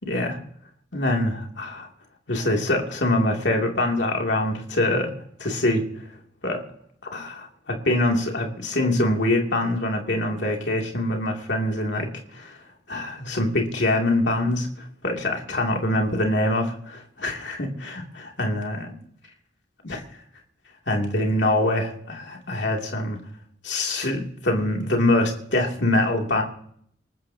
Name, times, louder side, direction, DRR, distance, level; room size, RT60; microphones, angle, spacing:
voice 1, 0.0-0.4 0.9-1.9 2.3-5.1 5.4-5.8 6.4-6.6 7.1-12.5 12.9-18.9 19.8-20.0 20.9-23.2 23.6-26.4, left 1 dB, 70° left, 1 dB, 2.7 m, -24 dB
27.0 x 14.0 x 2.8 m, 0.67 s
head